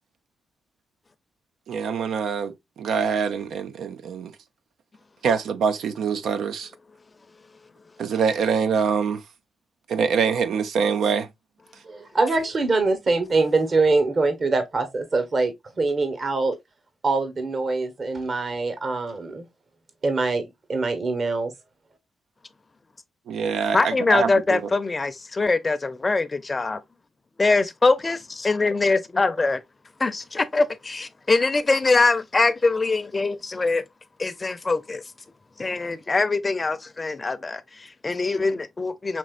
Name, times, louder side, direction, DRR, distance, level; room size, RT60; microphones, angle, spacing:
voice 1, 1.7-4.3 5.2-6.7 8.0-9.2 9.9-11.3 23.3-24.6, right 6 dB, 75° right, 0.5 m, -24 dB
voice 2, 11.8-16.5 17.0-19.5 20.0-21.5, right 3 dB, 50° right, 1.1 m, -24 dB
voice 3, 23.7-26.8 27.4-29.6 30.0-33.8 34.2-35.0 35.6-39.2, left 3 dB, 35° left, 0.6 m, -23 dB
5.3 x 3.1 x 2.4 m
supercardioid pair, 55°, 0 cm